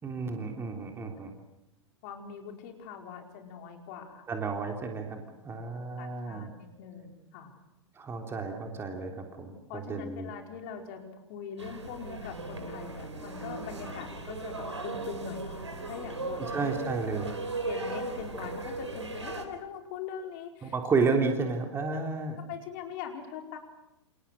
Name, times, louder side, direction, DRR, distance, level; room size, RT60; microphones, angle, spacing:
voice 1, 0.0-1.3 4.3-6.5 7.9-10.3 16.5-17.3 20.6-22.4, right 4 dB, 15° right, 3 dB, 3.3 m, -31 dB
voice 2, 2.0-4.2 5.3-5.4 6.0-7.6 9.7-16.5 17.6-20.7 21.9-22.0 22.5-23.6, left 7 dB, 40° left, 3 dB, 5.0 m, -42 dB
sound 1, 11.6-19.4, right 2 dB, 75° right, 4.2 m, -37 dB
28.5 x 27.5 x 6.5 m, 0.88 s
figure-of-eight pair, 100°, 15 cm